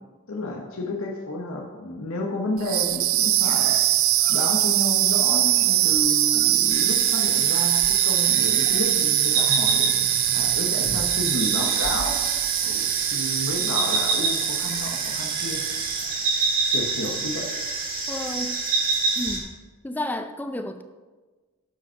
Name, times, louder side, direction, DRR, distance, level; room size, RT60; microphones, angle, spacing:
voice 1, 0.3-3.8 4.3-15.6 16.7-17.5, left 2 dB, 75° left, 0 dB, 1.1 m, -31 dB
sound 1, 2.6-16.1, right 15 dB, 70° right, 0.4 m, -23 dB
sound 2, 6.7-19.4, right 3 dB, 40° right, 2.1 m, -27 dB
voice 2, 18.1-18.6 19.2-19.5 19.8-20.8, left 1 dB, 10° left, 8 dB, 0.3 m, -31 dB
11.0 x 5.2 x 5.7 m, 1.3 s
head